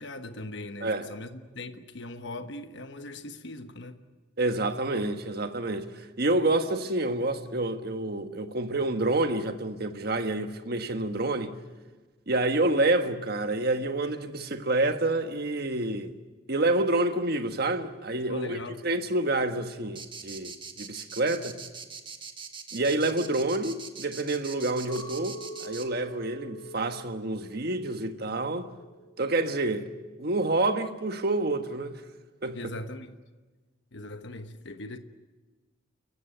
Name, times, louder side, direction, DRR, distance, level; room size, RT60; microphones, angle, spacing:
voice 1, 0.0-4.0 18.3-18.8 32.5-33.2 33.9-35.0, left 2 dB, 60° left, 1.2 m, -40 dB
voice 2, 4.4-11.5 12.3-16.1 16.5-21.6 22.7-28.7 29.2-29.9 30.2-31.9 32.4-32.6, right 2 dB, 50° right, 1.5 m, -28 dB
sound 1, 19.9-25.8, right 5 dB, 25° right, 1.6 m, -42 dB
Chink clink, 24.9-29.3 29.6-30.2, right 1 dB, 20° left, 2.1 m, -47 dB
29.5 x 15.5 x 9.1 m
head